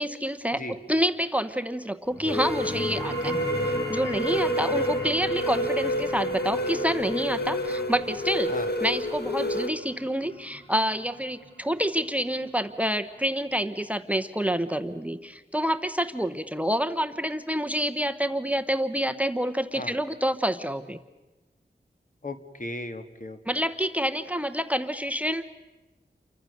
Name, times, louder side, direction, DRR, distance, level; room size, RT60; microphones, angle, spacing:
voice 1, 0.0-8.5 8.8-21.0 23.5-25.5, equal, 10° right, 12 dB, 1.0 m, -28 dB
sound 1, 2.1-13.2, right 1 dB, 15° left, 6.5 m, -39 dB
sound 2, 2.3-9.7, equal, 70° left, 2.1 m, -29 dB
voice 2, 22.2-23.6, left 1 dB, 50° left, 8 dB, 1.9 m, -37 dB
29.5 x 24.0 x 6.6 m, 1.1 s
wide cardioid pair, 80°, 18 cm